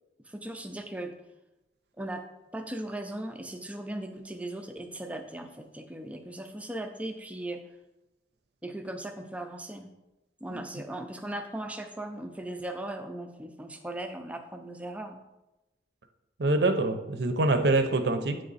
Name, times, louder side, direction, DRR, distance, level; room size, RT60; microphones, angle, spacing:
voice 1, 0.3-1.1 2.0-2.3 2.5-7.6 8.6-9.9 10.4-15.2, right 1 dB, 10° right, 5 dB, 0.4 m, -38 dB
voice 2, 16.4-18.4, right 2 dB, 65° right, 8 dB, 0.6 m, -25 dB
8.6 x 3.3 x 4.0 m, 0.99 s
head